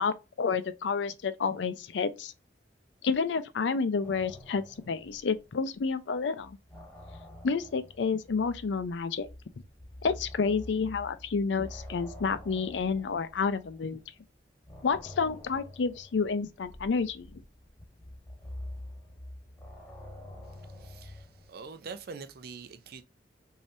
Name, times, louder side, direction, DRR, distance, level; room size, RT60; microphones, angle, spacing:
voice 1, 0.0-2.3 3.0-6.6 7.4-9.3 10.0-14.0 14.8-17.4, left 5 dB, 85° left, 0.5 m, -30 dB
sound 1, 4.0-5.9 6.2-14.1 14.6-21.5, left 1 dB, 10° left, 1.2 m, -47 dB
voice 2, 20.8-23.0, right 5 dB, 60° right, 0.5 m, -44 dB
3.2 x 2.7 x 2.6 m
head